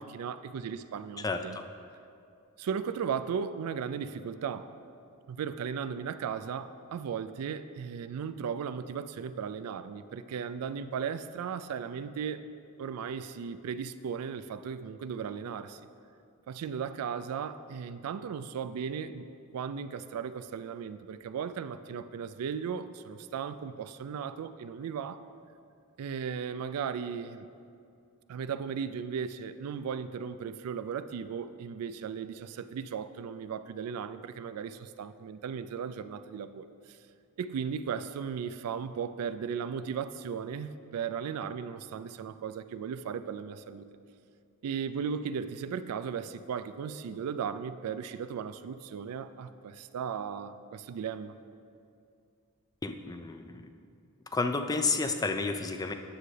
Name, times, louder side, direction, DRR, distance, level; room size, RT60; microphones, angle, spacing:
voice 1, 0.0-1.6 2.6-4.7 5.3-12.4 12.8-15.8 16.5-19.3 19.5-25.2 26.0-27.5 28.3-37.0 37.4-43.9 44.6-51.4, right 7 dB, 85° right, 12 dB, 0.3 m, -36 dB
voice 2, 1.2-1.7 52.8-53.7 54.3-55.9, left 3 dB, 15° left, 7 dB, 0.3 m, -31 dB
9.6 x 3.2 x 6.7 m, 2.4 s
head